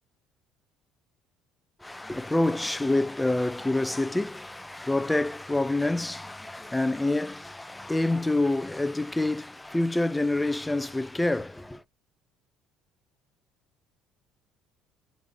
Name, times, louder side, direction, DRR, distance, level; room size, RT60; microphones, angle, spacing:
voice 1, 1.8-11.8, left 2 dB, 10° left, 0.4 m, -27 dB
7.7 x 5.2 x 2.6 m
cardioid pair, 105°, 0 cm